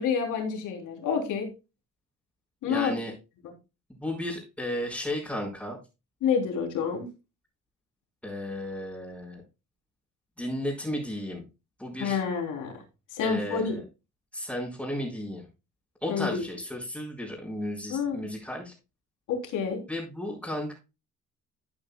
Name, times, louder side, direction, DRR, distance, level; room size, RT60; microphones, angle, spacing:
voice 1, 0.0-1.5 2.6-2.9 3.4-3.5 6.2-7.1 12.0-12.8 13.1-13.7 16.1-16.4 17.9-18.2 19.3-19.8, left 6 dB, 85° left, 2 dB, 3.7 m, -28 dB
voice 2, 2.7-3.1 4.0-5.8 8.2-9.4 10.4-11.4 11.8-12.2 13.2-13.8 14.3-15.5 16.0-18.7 19.9-20.7, left 1 dB, 5° left, -4 dB, 5.5 m, -34 dB
14.0 x 8.7 x 2.3 m, 0.28 s
cardioid pair, 90°, 30 cm